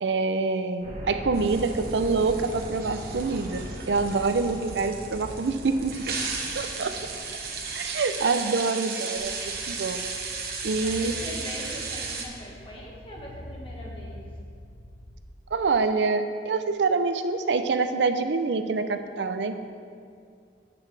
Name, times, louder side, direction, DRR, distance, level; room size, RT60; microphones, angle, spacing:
voice 1, 0.0-6.2 6.5-6.9 7.7-10.1 10.6-11.1 15.5-19.6, right 4 dB, 90° right, 9 dB, 0.5 m, -26 dB
sound 1, 0.8-8.3, equal, 40° right, 1.4 m, -40 dB
sound 2, 1.3-12.3, right 5 dB, 60° right, 1.1 m, -35 dB
sound 3, 9.2-15.1, left 1 dB, 80° left, 1.3 m, -44 dB
voice 2, 10.8-14.2, left 1 dB, 30° left, -3 dB, 1.6 m, -41 dB
10.5 x 8.7 x 3.3 m, 2.3 s
head